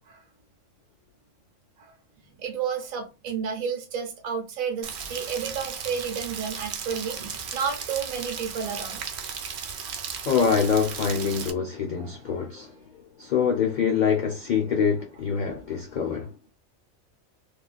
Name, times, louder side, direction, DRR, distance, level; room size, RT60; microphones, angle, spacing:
voice 1, 2.4-9.2 12.0-12.3, right 6 dB, 90° right, 1.1 m, -31 dB
Rain, 4.8-11.5, right 7 dB, 65° right, 0.8 m, -36 dB
voice 2, 10.3-16.3, left 6 dB, 85° left, 0.4 m, -25 dB
3.0 x 2.4 x 2.3 m
omnidirectional pair, 1.4 m